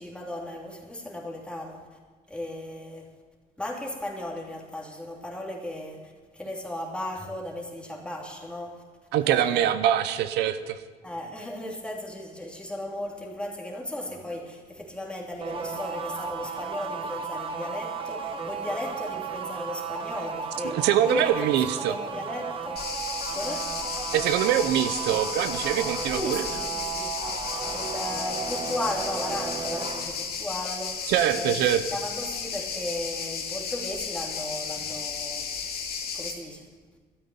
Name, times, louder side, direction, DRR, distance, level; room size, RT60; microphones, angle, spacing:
voice 1, 0.0-1.9 2.3-3.1 3.6-8.8 9.2-9.7 11.0-21.5 21.7-22.9 23.3-23.7 26.1-27.1 27.7-31.6 31.9-35.5 36.1-36.7, left 1 dB, 5° left, 2.8 m, -35 dB
voice 2, 9.1-10.8 20.6-21.9 24.1-26.4 31.1-31.8, right 11 dB, 85° right, 0.7 m, -24 dB
sound 1, 15.4-30.0, right 6 dB, 30° right, 1.7 m, -34 dB
sound 2, 22.8-36.3, left 6 dB, 65° left, 2.4 m, -34 dB
13.0 x 9.1 x 8.7 m
cardioid pair, 110°, 17 cm